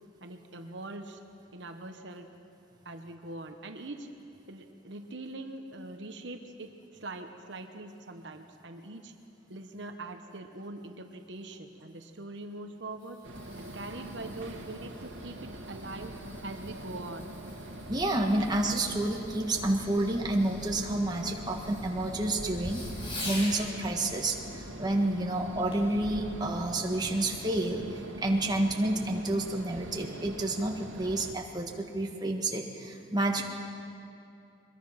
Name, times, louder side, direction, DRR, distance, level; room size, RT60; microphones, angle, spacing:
voice 1, 0.2-1.2 1.5-2.3 2.8-4.1 4.5-6.7 7.0-9.1 9.5-13.2 13.6-17.2 17.7-17.9 18.4-18.5, right 2 dB, 65° right, 5 dB, 1.1 m, -42 dB
Fireworks, 12.7-23.7 25.7-26.0 26.6-26.7, left 1 dB, 30° left, 4.0 m, -46 dB
sound 1, 13.2-31.3, right 1 dB, 85° right, 1.9 m, -43 dB
voice 2, 17.9-22.9 23.2-33.4, right 1 dB, 20° right, 1 dB, 1.6 m, -29 dB
23.0 x 21.5 x 5.8 m, 2.7 s
head